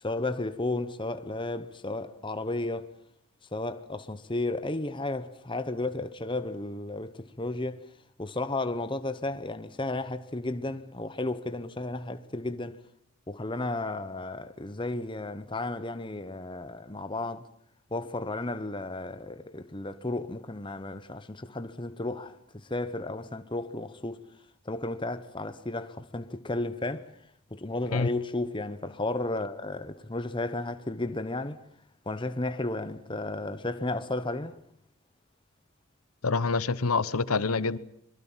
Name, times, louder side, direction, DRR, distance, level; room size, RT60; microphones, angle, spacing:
voice 1, 0.0-2.9 3.5-7.8 8.2-12.8 13.3-17.5 17.9-24.2 24.6-27.1 27.5-31.6 32.1-34.6, left 2 dB, 20° left, 1.1 m, -33 dB
voice 2, 36.2-37.8, left 4 dB, 85° left, 1.0 m, -26 dB
24.5 x 22.5 x 7.4 m
head